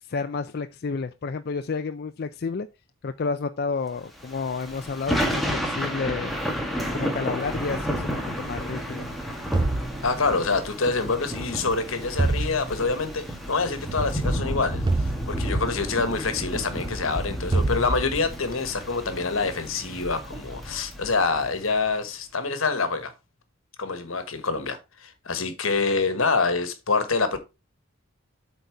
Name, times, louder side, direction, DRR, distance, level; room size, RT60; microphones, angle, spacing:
voice 1, 0.0-2.7 3.0-6.3 6.9-8.1 8.4-9.1, left 4 dB, 50° left, 0.4 m, -30 dB
Thunder / Rain, 4.2-21.7, equal, ahead, 1.3 m, -31 dB
sound 1, 9.5-10.7 12.2-13.1 14.9-15.9 17.5-18.5, right 2 dB, 20° right, 0.4 m, -26 dB
voice 2, 10.0-23.1 23.8-27.4, left 4 dB, 80° left, 1.3 m, -26 dB
8.1 x 4.0 x 4.7 m
head